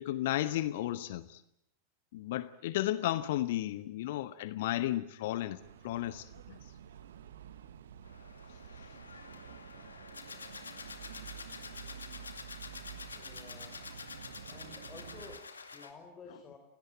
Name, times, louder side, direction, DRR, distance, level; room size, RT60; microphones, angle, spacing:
voice 1, 0.0-1.4 2.1-5.6 5.8-6.6, left 14 dB, 55° left, 0.9 m, -33 dB
sound 1, 5.6-15.4, right 8 dB, 60° right, 1.4 m, -50 dB
sound 2, 8.0-15.9, left 4 dB, 75° left, 2.3 m, -48 dB
voice 2, 13.1-13.9 14.5-16.6, left 4 dB, 25° left, 3.9 m, -52 dB
29.5 x 17.5 x 8.9 m
figure-of-eight pair, 90°, 0 cm